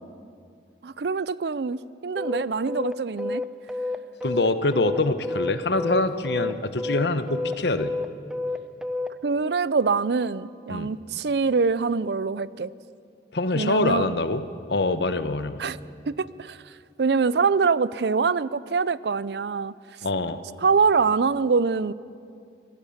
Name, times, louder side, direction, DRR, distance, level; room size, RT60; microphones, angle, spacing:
voice 1, 0.8-3.4 9.2-12.7 13.5-14.2 15.6-15.8 16.1-16.6 17.0-19.7 20.6-21.9, right 5 dB, 70° right, 19 dB, 0.5 m, -24 dB
sound 1, 2.2-9.1, left 2 dB, 5° right, 0.6 m, -29 dB
voice 2, 4.2-7.9 10.7-10.9 13.3-14.4 14.7-15.6 20.0-20.4, left 2 dB, 75° left, 11 dB, 1.1 m, -24 dB
25.0 x 17.5 x 7.2 m, 2.4 s
head